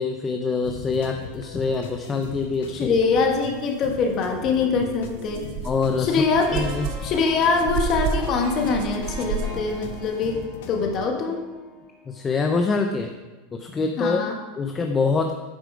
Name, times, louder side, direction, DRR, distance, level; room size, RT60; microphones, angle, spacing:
voice 1, 0.0-3.0 5.6-6.2 6.5-6.9 12.1-13.1 13.5-14.2 14.6-15.3, left 4 dB, 15° left, 4 dB, 0.5 m, -25 dB
sound 1, 0.6-11.1, left 7 dB, 70° left, 1.0 m, -39 dB
voice 2, 2.7-5.5 6.0-6.6 7.0-10.4 10.7-11.4 14.0-14.4, left 4 dB, 35° left, 3 dB, 1.4 m, -23 dB
sound 2, 4.4-4.5 5.0-10.0, right 5 dB, 55° right, 0.8 m, -31 dB
sound 3, 6.4-12.4 12.8-12.9, left 2 dB, ahead, 2.4 m, -41 dB
8.8 x 6.9 x 5.0 m, 1.2 s
supercardioid pair, 160°, 0 cm